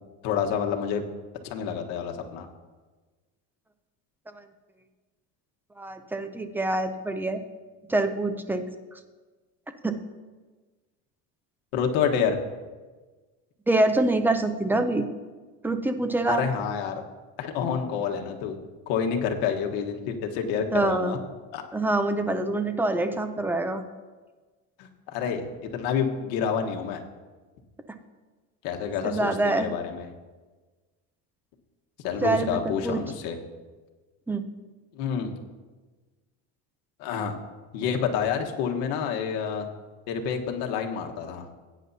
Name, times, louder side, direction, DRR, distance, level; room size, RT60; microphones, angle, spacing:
voice 1, 0.2-1.0 1.4-2.5 11.7-12.4 16.2-17.0 17.4-18.6 18.9-21.2 21.5-21.6 24.8-25.4 25.7-27.0 28.6-30.1 32.0-33.4 35.0-35.3 37.0-37.4 37.7-39.7 40.1-41.5, left 7 dB, 70° left, 3 dB, 1.4 m, -28 dB
voice 2, 5.8-7.4 7.9-8.6 9.8-9.9 13.7-15.1 15.6-16.4 20.7-21.2 21.7-23.8 29.0-29.7 32.2-33.0 34.3-34.5, right 2 dB, 5° right, 8 dB, 0.5 m, -25 dB
16.5 x 9.3 x 2.8 m, 1.3 s
cardioid pair, 140°, 37 cm